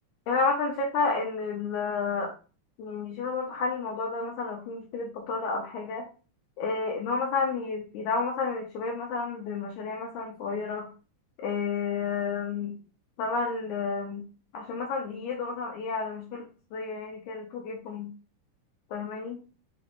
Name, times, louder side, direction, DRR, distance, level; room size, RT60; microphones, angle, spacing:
voice 1, 0.3-2.3 2.8-6.1 6.6-10.9 11.4-12.7 13.2-14.2 14.5-18.1 18.9-19.4, left 4 dB, 80° left, 0 dB, 2.1 m, -31 dB
6.0 x 2.5 x 3.2 m, 0.36 s
omnidirectional pair, 3.6 m